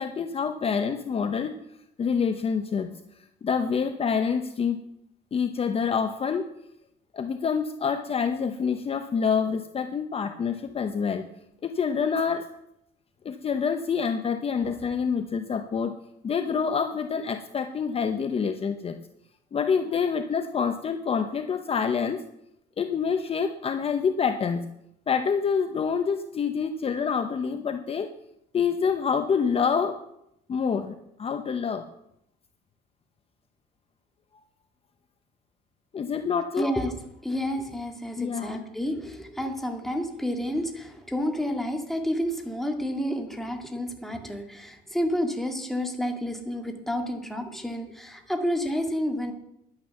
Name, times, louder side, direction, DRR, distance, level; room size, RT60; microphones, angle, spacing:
voice 1, 0.0-1.5 2.0-2.9 3.4-4.8 5.3-6.5 7.1-11.3 11.6-12.4 13.2-15.9 16.2-19.0 19.5-22.2 22.8-24.6 25.1-28.1 28.5-30.0 30.5-31.8 35.9-36.7 38.2-38.6, left 6 dB, 35° left, 8 dB, 0.9 m, -27 dB
voice 2, 36.6-37.0 37.2-49.3, equal, ahead, 3 dB, 2.2 m, -30 dB
11.0 x 9.7 x 7.0 m, 0.78 s
cardioid pair, 110°, 17 cm